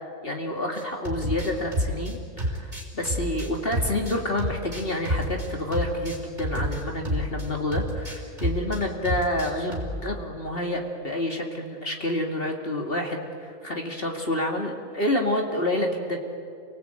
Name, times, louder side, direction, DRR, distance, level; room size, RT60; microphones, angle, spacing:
voice 1, 0.2-16.2, left 1 dB, 40° left, 2 dB, 2.6 m, -28 dB
sound 1, 0.8-7.5 7.7-8.8 9.0-10.0, equal, 30° right, 4.7 m, -29 dB
29.0 x 19.0 x 9.0 m, 2.4 s
omnidirectional pair, 1.5 m